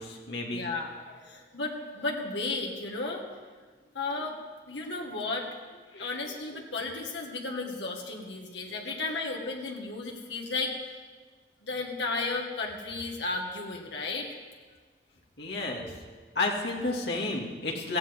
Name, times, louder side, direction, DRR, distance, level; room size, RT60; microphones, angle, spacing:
voice 1, 0.0-0.6 5.9-6.1 15.4-15.9 16.4-18.0, left 2 dB, 70° left, -1 dB, 2.3 m, -31 dB
voice 2, 0.5-3.3 3.9-4.4 4.7-5.5 6.0-10.8 11.6-14.4, left 3 dB, 90° left, 0 dB, 1.7 m, -34 dB
17.5 x 15.0 x 3.7 m, 1.4 s
head